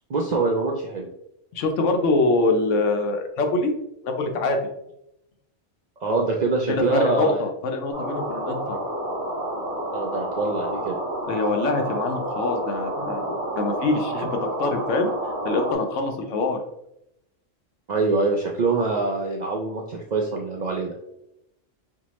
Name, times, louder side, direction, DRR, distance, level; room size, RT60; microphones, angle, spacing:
voice 1, 0.1-1.1 6.0-7.4 9.9-11.0 17.9-20.9, right 3 dB, 60° right, 0 dB, 0.4 m, -24 dB
voice 2, 1.5-3.7 4.0-4.6 6.7-8.8 11.3-15.1 15.4-16.6, left 3 dB, 75° left, 4 dB, 1.0 m, -24 dB
sound 1, 7.9-15.7, right 1 dB, 30° left, 1.2 m, -30 dB
5.4 x 2.2 x 3.0 m, 0.83 s
omnidirectional pair, 1.3 m